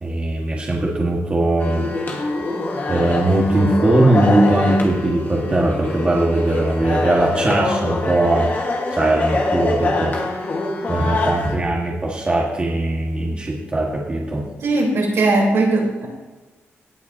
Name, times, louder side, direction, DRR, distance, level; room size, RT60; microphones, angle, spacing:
voice 1, 0.0-2.3 2.9-8.5 8.9-10.4 10.9-14.5, right 1 dB, 25° right, -3 dB, 1.8 m, -20 dB
sound 1, 1.6-11.6, left 2 dB, 40° left, 1.7 m, -24 dB
voice 2, 14.6-16.1, right 2 dB, 70° right, -3 dB, 4.0 m, -18 dB
18.0 x 8.3 x 2.9 m, 1.2 s
cardioid pair, 125°, 5 cm